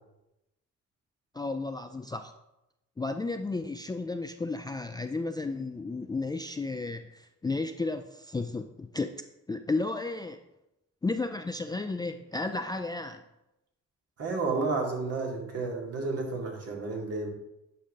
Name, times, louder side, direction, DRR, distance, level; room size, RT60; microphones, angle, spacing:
voice 1, 1.3-2.3 3.0-10.4 11.0-13.2, left 3 dB, 15° left, 7 dB, 0.4 m, -33 dB
voice 2, 14.2-17.3, right 3 dB, 55° right, 0 dB, 2.2 m, -31 dB
10.0 x 5.5 x 3.6 m, 0.92 s
cardioid pair, 90°, 30 cm